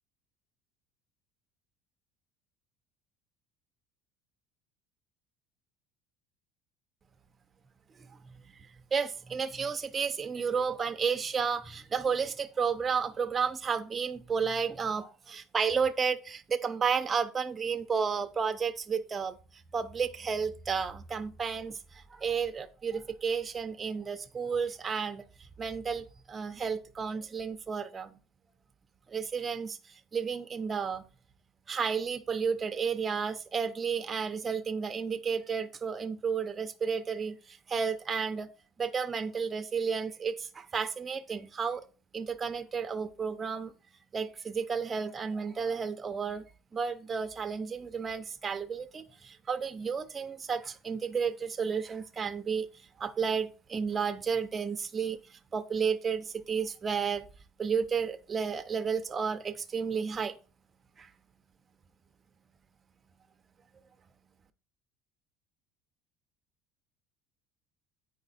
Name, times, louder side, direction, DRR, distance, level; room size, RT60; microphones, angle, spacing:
voice 1, 8.9-19.4 19.7-28.2 29.1-31.1 31.7-38.5 38.8-41.8 42.1-43.7 44.1-46.5 46.7-57.2 57.6-60.4 61.0-61.1, right 6 dB, 20° right, 0.6 m, -32 dB
8.7 x 4.9 x 4.1 m
cardioid pair, 165°, 0 cm